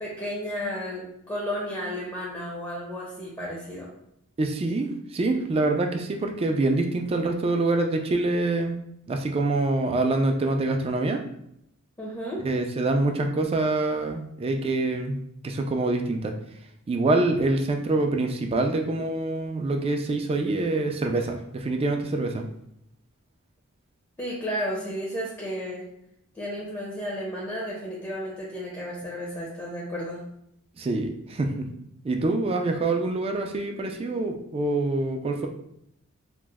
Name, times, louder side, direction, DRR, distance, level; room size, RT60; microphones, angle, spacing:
voice 1, 0.0-3.9 12.0-12.4 24.2-25.8 26.3-30.2, equal, 15° left, -4 dB, 0.6 m, -33 dB
voice 2, 4.4-8.8 9.1-11.2 12.4-16.3 16.9-22.4 30.8-31.7 32.0-35.5, right 2 dB, 25° right, 4 dB, 0.3 m, -25 dB
3.0 x 2.0 x 3.4 m, 0.77 s
head